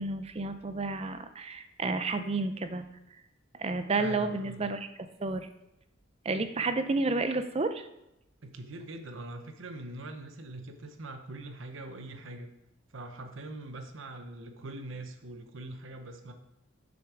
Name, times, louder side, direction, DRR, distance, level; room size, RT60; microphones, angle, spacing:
voice 1, 0.0-2.9 3.6-4.9 5.2-5.5 6.2-7.9, right 3 dB, 30° right, 9 dB, 0.5 m, -31 dB
voice 2, 4.0-4.7 8.4-12.5 12.9-16.3, right 2 dB, 65° right, 6 dB, 0.8 m, -43 dB
7.0 x 6.2 x 4.8 m, 0.88 s
head